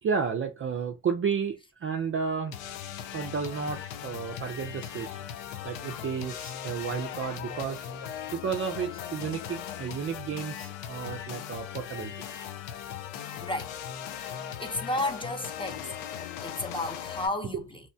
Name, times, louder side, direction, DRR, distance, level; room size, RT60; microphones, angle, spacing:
voice 1, 0.0-2.6 3.1-7.9 8.3-12.1, right 6 dB, 30° right, 0.4 m, -32 dB
sound 1, 2.5-17.3, left 9 dB, 90° left, 0.6 m, -39 dB
voice 2, 13.4-13.7 14.3-15.9 16.4-17.8, left 2 dB, 10° left, 0.7 m, -33 dB
2.8 x 2.1 x 2.7 m
supercardioid pair, 60°, 45 cm